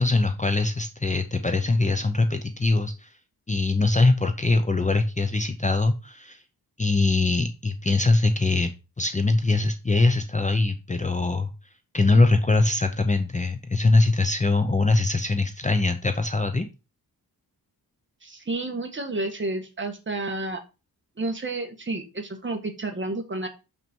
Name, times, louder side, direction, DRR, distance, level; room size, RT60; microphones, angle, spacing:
voice 1, 0.0-3.1 3.5-6.4 6.8-8.7 9.0-11.5 11.9-16.7, left 3 dB, 20° left, 7 dB, 0.7 m, -22 dB
voice 2, 18.2-20.6 21.2-23.5, right 2 dB, 30° right, 4 dB, 1.6 m, -30 dB
6.7 x 6.1 x 4.5 m, 0.29 s
wide cardioid pair, 135°, 39 cm